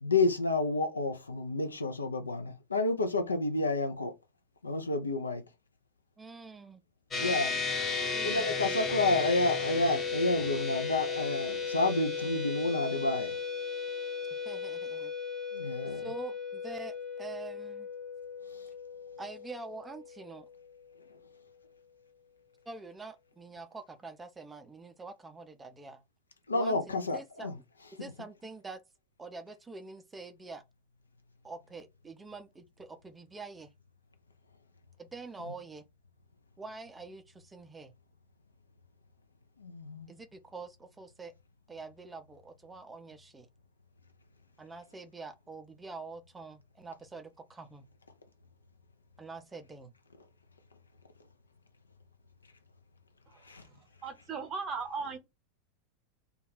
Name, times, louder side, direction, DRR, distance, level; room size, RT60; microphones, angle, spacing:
voice 1, 0.0-4.1 4.6-5.4 7.1-7.6 8.2-13.4 15.5-16.1 18.5-18.6 26.5-27.5 39.6-40.1 53.4-53.6, left 2 dB, 80° left, 0.4 m, -30 dB
voice 2, 6.2-6.8 8.0-8.7 14.5-15.1 15.9-17.9 19.2-20.5 22.7-26.0 26.5-27.5 28.0-28.8 29.2-30.6 31.4-33.7 35.0-35.8 36.6-37.9 40.1-41.3 41.7-43.5 44.6-47.9 49.2-49.9, right 3 dB, 15° right, 0.4 m, -46 dB
sound 1, 7.1-20.7, left 5 dB, 20° left, 0.7 m, -35 dB
voice 3, 54.0-55.2, right 5 dB, 30° right, 0.8 m, -36 dB
2.3 x 2.2 x 3.2 m
figure-of-eight pair, 85°, 0 cm